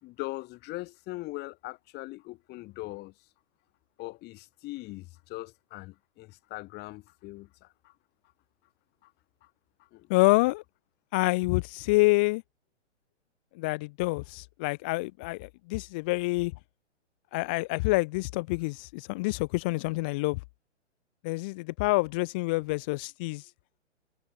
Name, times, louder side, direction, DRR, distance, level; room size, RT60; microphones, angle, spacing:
voice 1, 0.0-3.1 4.0-7.9 9.0-9.1 9.4-9.5 9.9-10.1, left 20 dB, 30° left, 3.4 m, -41 dB
voice 2, 10.1-10.6 11.1-12.4 13.5-16.5 17.3-20.4 21.2-23.5, left 24 dB, 10° left, 0.3 m, -27 dB
figure-of-eight pair, 120°, 35 cm